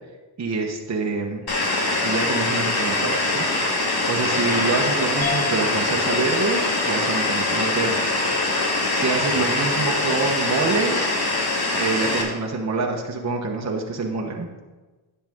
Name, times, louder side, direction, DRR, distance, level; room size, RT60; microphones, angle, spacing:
voice 1, 0.4-1.4 2.0-8.2 8.5-11.0 11.7-14.5, right 3 dB, 35° right, 0 dB, 1.2 m, -26 dB
sound 1, 1.5-12.2, left 2 dB, 50° left, 2.3 m, -23 dB
sound 2, 5.2-10.1, left 4 dB, 20° left, 1.4 m, -38 dB
10.5 x 6.8 x 3.7 m, 1.2 s
cardioid pair, 65°, 47 cm